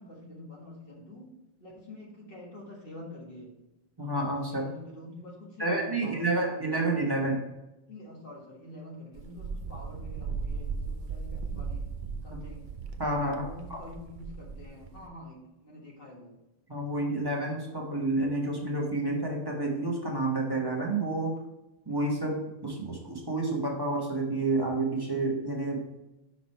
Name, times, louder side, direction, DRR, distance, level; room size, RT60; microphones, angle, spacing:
voice 1, 0.0-3.5 4.5-6.9 7.9-11.9 12.2-12.7 13.3-16.4, left 1 dB, 40° left, -3 dB, 1.8 m, -47 dB
voice 2, 4.0-4.6 5.6-7.4 13.0-13.8 16.7-21.4 21.8-25.8, right 2 dB, 20° right, -1 dB, 1.3 m, -29 dB
Wind, 9.2-15.1, right 5 dB, 55° right, 0.6 m, -37 dB
5.9 x 5.0 x 4.3 m, 0.95 s
omnidirectional pair, 1.4 m